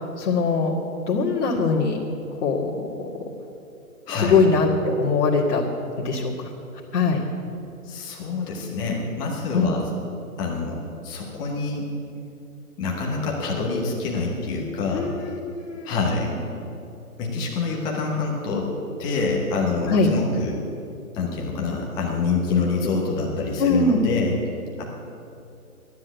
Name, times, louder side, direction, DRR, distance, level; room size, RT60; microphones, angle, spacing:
voice 1, 0.2-0.7 1.1-2.0 2.4-3.1 4.2-5.6 6.0-6.3 6.9-7.2 9.5-9.7 14.9-16.0 16.3-16.4 19.9-20.1 23.6-24.0, left 4 dB, 50° left, -5 dB, 2.0 m, -22 dB
voice 2, 7.8-9.8 10.4-10.8 11.0-11.9 12.8-15.1 15.8-16.3 17.2-18.7 19.0-20.6 21.1-24.3 24.8-24.9, left 4 dB, 10° left, -1 dB, 1.0 m, -26 dB
12.5 x 10.0 x 8.1 m, 2.7 s
hypercardioid pair, 155°, 46 cm